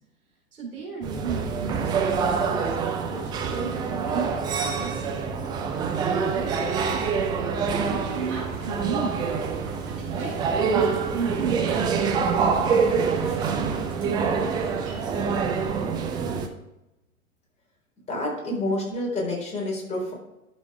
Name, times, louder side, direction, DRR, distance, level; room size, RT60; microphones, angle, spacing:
voice 1, 0.5-2.8 3.1-5.3 6.1-9.5 10.1-11.9 12.3-14.3, right 5 dB, 75° right, -2 dB, 3.6 m, -35 dB
sound 1, 1.0-16.5, right 5 dB, 10° right, 0.4 m, -26 dB
sound 2, 8.1-15.4, right 3 dB, 30° right, 3.2 m, -42 dB
voice 2, 18.1-20.1, left 1 dB, 15° left, -2 dB, 3.7 m, -28 dB
11.5 x 6.3 x 3.4 m, 0.94 s
figure-of-eight pair, 105°, 43 cm